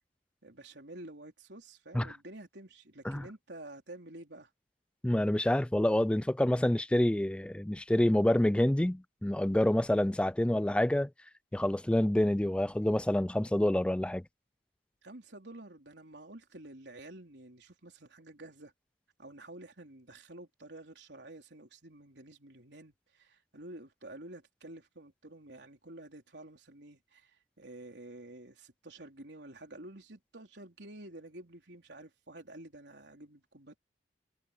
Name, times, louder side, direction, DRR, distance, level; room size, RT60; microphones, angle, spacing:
voice 1, 0.4-4.5 15.0-18.7 19.2-33.8, right 1 dB, 70° right, 4.0 m, -50 dB
voice 2, 5.0-11.1 11.5-14.2, left 1 dB, 5° left, 0.3 m, -27 dB
head